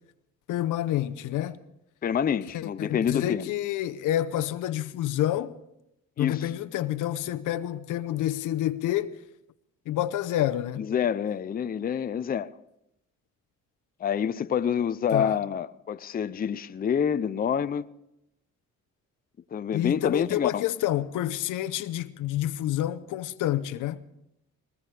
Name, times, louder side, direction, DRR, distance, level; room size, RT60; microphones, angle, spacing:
voice 1, 0.5-1.6 2.5-5.5 6.2-9.1 9.9-10.9 15.1-15.3 19.7-24.0, left 13 dB, 85° left, 0.8 m, -28 dB
voice 2, 2.0-3.5 6.2-6.5 10.8-12.5 14.0-17.9 19.5-20.7, left 8 dB, 30° left, 0.5 m, -27 dB
21.0 x 20.0 x 3.3 m
cardioid pair, 90°, 30 cm